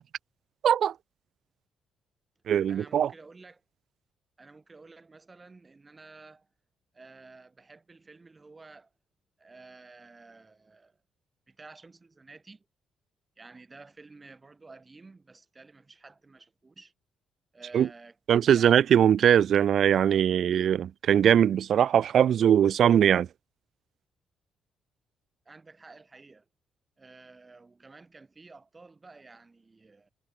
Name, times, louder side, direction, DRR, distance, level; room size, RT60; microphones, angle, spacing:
voice 1, 0.6-0.9 2.5-3.1 17.7-17.9 18.3-23.3, right 9 dB, 65° right, 0.8 m, -21 dB
voice 2, 2.7-3.6 4.4-6.5 6.9-8.9 9.4-11.0 11.5-12.7 13.4-16.9 17.5-18.2 18.5-18.8 25.5-26.5 27.0-30.1, right 3 dB, 25° right, 5.3 m, -52 dB
cardioid pair, 90°, 0 cm